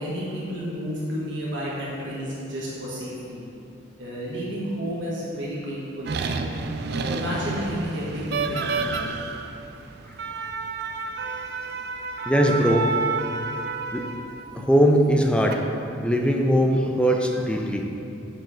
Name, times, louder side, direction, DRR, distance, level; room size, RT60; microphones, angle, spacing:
voice 1, 0.0-3.4 4.0-6.5 6.9-9.1, equal, 75° right, -7 dB, 1.4 m, -31 dB
sound 1, 6.0-14.5 15.2-15.5, right 4 dB, 55° right, 0.4 m, -30 dB
voice 2, 12.3-12.9 13.9-14.1 14.5-15.6 16.0-17.9, equal, 5° left, 2 dB, 0.5 m, -20 dB
7.5 x 4.7 x 4.9 m, 2.7 s
head